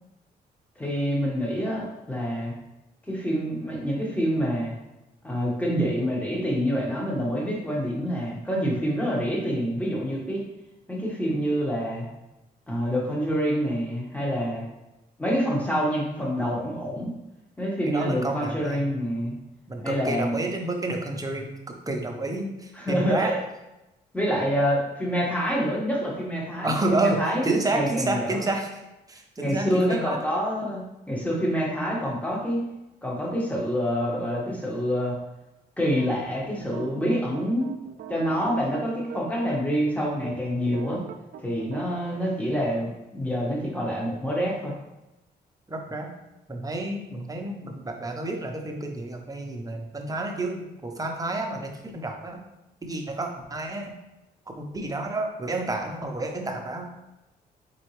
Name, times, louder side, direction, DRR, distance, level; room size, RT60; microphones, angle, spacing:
voice 1, 0.8-2.5 3.1-4.7 5.2-10.4 10.9-12.1 12.7-14.6 15.2-17.1 17.6-19.3 19.8-20.3 22.7-23.4 24.1-28.4 29.4-32.6 33.0-35.2 35.8-37.7 38.1-41.0 41.4-44.7, equal, 10° left, -3 dB, 1.4 m, -27 dB
voice 2, 17.9-18.8 19.7-23.3 26.6-28.7 29.1-30.2 45.7-46.1 46.5-52.4 52.8-53.9 54.6-56.9, right 2 dB, 20° right, 3 dB, 0.9 m, -30 dB
sound 1, 35.9-39.5 39.7-39.9 40.2-41.8, right 8 dB, 60° right, 0.4 m, -42 dB
4.3 x 3.8 x 3.2 m, 0.95 s
cardioid pair, 70°, 17 cm